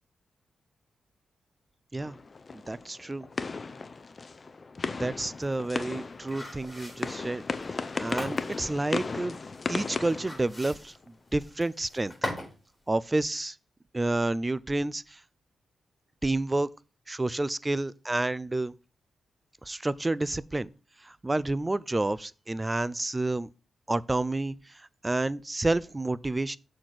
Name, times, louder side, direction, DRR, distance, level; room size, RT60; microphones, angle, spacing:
sound 1, 2.0-11.1, left 4 dB, 35° left, 0.6 m, -36 dB
voice 1, 2.5-3.3 5.0-7.4 8.0-9.4 9.7-10.9 11.3-12.1 12.9-13.6 13.9-15.2 16.2-16.7 17.1-18.7 19.6-20.7 21.0-23.5 23.9-26.6, right 2 dB, 20° right, 0.4 m, -29 dB
sound 2, 5.2-12.6 12.9-13.0, left 1 dB, 10° left, 3.8 m, -40 dB
6.6 x 4.2 x 5.9 m
cardioid pair, 85°, 0 cm